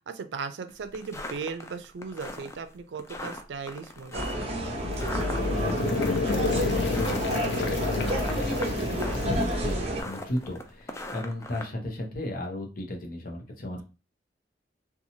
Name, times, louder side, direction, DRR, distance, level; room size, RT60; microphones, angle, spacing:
voice 1, 0.1-4.3, right 5 dB, 85° right, 10 dB, 0.4 m, -37 dB
sound 1, 0.7-11.7, left 2 dB, 15° left, 0.3 m, -40 dB
sound 2, 4.1-10.0, right 1 dB, 35° right, 0.7 m, -30 dB
sound 3, 4.4-10.4, left 4 dB, 85° left, 0.4 m, -31 dB
voice 2, 5.3-13.8, left 1 dB, 55° left, 2 dB, 0.7 m, -36 dB
2.8 x 2.3 x 2.7 m, 0.33 s
head